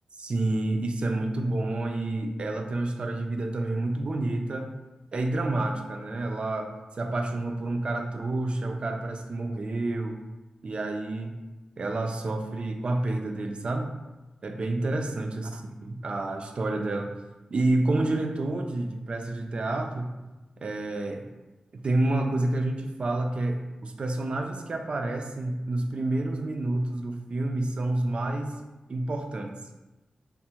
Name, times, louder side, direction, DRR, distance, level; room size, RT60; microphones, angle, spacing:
voice 1, 0.2-4.7 5.1-6.7 7.0-10.2 10.6-11.4 11.8-13.9 14.4-17.1 17.5-20.1 20.6-21.3 21.7-28.6 28.9-29.5, right 2 dB, 50° right, 5 dB, 0.3 m, -29 dB
3.5 x 2.0 x 2.8 m, 1.1 s
wide cardioid pair, 100°, 2 cm